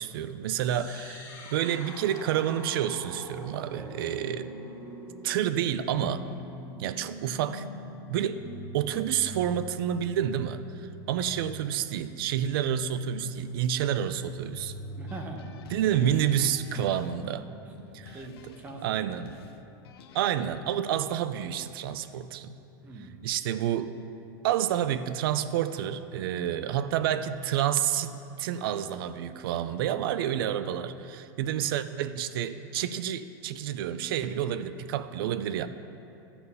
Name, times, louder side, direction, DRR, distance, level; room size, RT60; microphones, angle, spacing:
voice 1, 0.0-4.5 5.2-6.3 6.8-7.7 8.1-8.4 8.7-14.7 15.7-17.4 17.9-18.2 18.8-19.3 20.1-22.5 23.2-23.9 24.4-35.7, right 10 dB, 65° right, 12 dB, 0.4 m, -29 dB
sound 1, 0.6-16.6, equal, 25° left, 0.9 m, -44 dB
voice 2, 15.0-15.5 16.6-19.3 22.8-23.3 31.4-31.7, right 2 dB, 15° right, 1 dB, 0.7 m, -44 dB
sound 2, 15.1-20.3, left 7 dB, 85° left, 0.5 m, -51 dB
12.5 x 4.2 x 5.5 m, 2.7 s
supercardioid pair, 165°, 13 cm